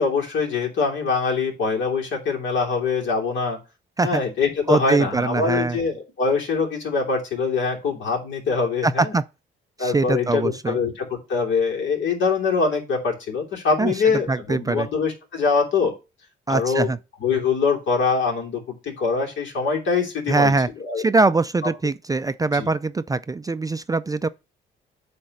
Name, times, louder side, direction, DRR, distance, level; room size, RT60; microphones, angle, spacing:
voice 1, 0.0-3.6 4.0-9.1 9.8-15.9 16.5-16.9 17.2-21.0 22.5-22.7, left 4 dB, 70° left, 3.0 m, -23 dB
voice 2, 4.7-5.8 8.8-9.2 9.8-10.8 13.8-13.9 14.3-14.9 16.5-17.0 20.3-20.7 21.0-24.3, right 3 dB, 20° right, 0.4 m, -22 dB
8.6 x 3.4 x 6.5 m
cardioid pair, 90°, 20 cm